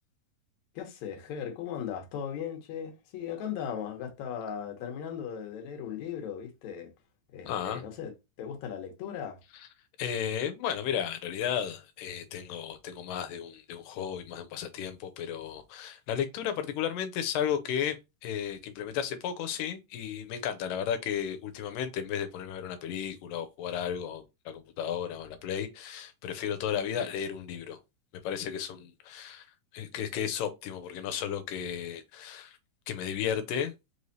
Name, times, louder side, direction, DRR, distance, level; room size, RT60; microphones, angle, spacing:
voice 1, 0.8-6.9 7.3-8.1 8.4-9.4, left 8 dB, 65° left, 2.1 m, -37 dB
voice 2, 7.5-7.8 10.0-27.8 28.2-29.5 29.7-32.6 32.9-33.7, left 8 dB, 85° left, 2.3 m, -34 dB
5.1 x 3.2 x 2.7 m
omnidirectional pair, 3.8 m